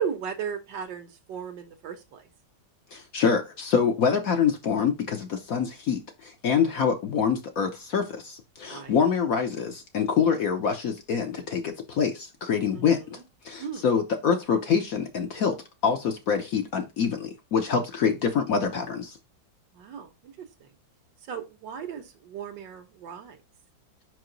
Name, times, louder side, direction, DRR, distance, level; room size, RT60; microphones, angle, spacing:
voice 1, 0.0-2.3 8.6-9.0 12.7-13.1 13.6-13.8 18.0-18.2 19.7-20.7 21.3-23.4, right 7 dB, 70° right, 1.6 m, -36 dB
voice 2, 2.9-13.2 13.4-15.6 15.8-19.2, left 6 dB, 60° left, 1.0 m, -25 dB
5.4 x 4.8 x 3.9 m
omnidirectional pair, 2.1 m